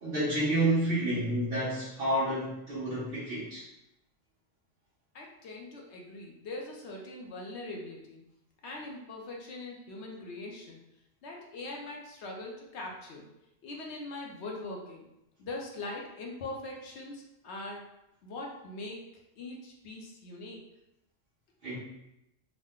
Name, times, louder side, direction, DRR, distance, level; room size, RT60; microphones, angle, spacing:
voice 1, 0.0-3.6 21.6-21.8, right 1 dB, 55° right, -11 dB, 1.1 m, -29 dB
voice 2, 5.1-8.2 8.6-10.8 11.2-13.3 13.6-15.0 15.4-17.8 18.2-19.0 19.4-20.6, left 2 dB, 70° left, -1 dB, 1.0 m, -41 dB
3.7 x 2.1 x 3.5 m, 0.87 s
omnidirectional pair, 1.2 m